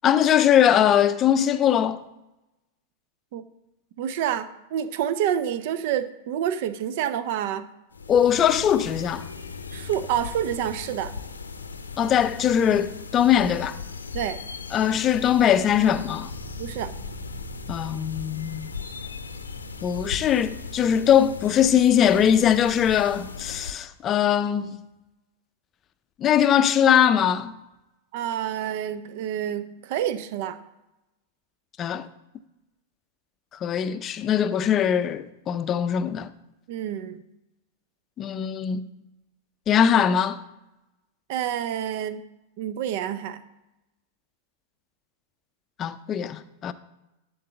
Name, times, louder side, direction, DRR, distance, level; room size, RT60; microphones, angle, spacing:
voice 1, 0.0-2.0 8.1-9.3 12.0-13.8 14.7-16.3 17.7-18.7 19.8-24.8 26.2-27.5 31.8-32.1 33.6-36.3 38.2-38.8 39.7-40.4 45.8-46.7, left 9 dB, 30° left, 0.5 m, -21 dB
voice 2, 4.0-7.7 9.7-11.1 14.1-14.4 16.6-16.9 28.1-30.6 36.7-37.2 41.3-42.2 42.6-43.4, right 10 dB, 55° right, 0.6 m, -28 dB
sound 1, 7.9-23.7, left 5 dB, 80° left, 0.7 m, -38 dB
Bass guitar, 16.3-22.5, right 2 dB, 30° right, 2.9 m, -46 dB
11.5 x 3.9 x 6.8 m
figure-of-eight pair, 95°, 0 cm